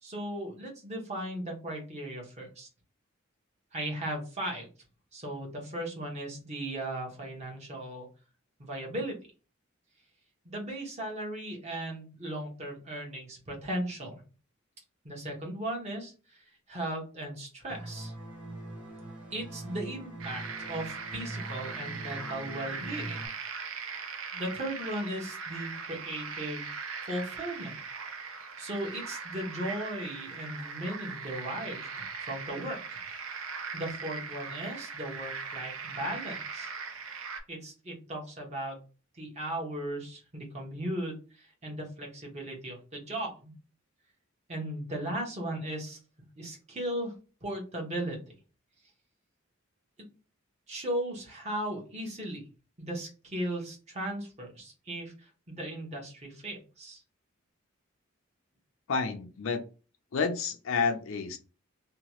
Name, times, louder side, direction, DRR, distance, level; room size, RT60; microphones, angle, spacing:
voice 1, 0.0-2.7 3.7-4.7 5.1-8.1 8.6-9.2 10.4-14.2 15.0-18.1 19.3-20.4 20.7-23.2 24.3-26.7 27.0-27.8 28.6-31.8 32.3-33.0 33.7-36.7 37.5-38.8 39.2-43.5 44.5-46.0 46.4-47.1 47.4-48.3 50.7-52.4 52.8-57.0, right 1 dB, 30° right, 0 dB, 1.0 m, -37 dB
sound 1, 17.7-23.3, right 1 dB, 5° right, 0.8 m, -43 dB
sound 2, 20.2-37.4, right 5 dB, 80° right, 0.6 m, -40 dB
voice 2, 58.9-59.6 60.1-61.4, left 5 dB, 70° left, 6 dB, 0.5 m, -29 dB
2.8 x 2.3 x 2.9 m, 0.34 s
head